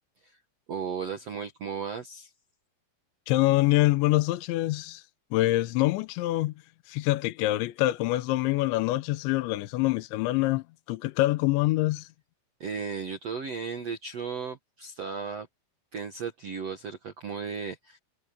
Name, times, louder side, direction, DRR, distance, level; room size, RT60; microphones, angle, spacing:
voice 1, 0.7-2.3 12.6-15.5 15.9-18.0, right 6 dB, 65° right, 1.6 m, -35 dB
voice 2, 3.3-5.0 5.3-6.5 6.9-12.1, left 17 dB, 80° left, 3.3 m, -25 dB
omnidirectional pair, 5.2 m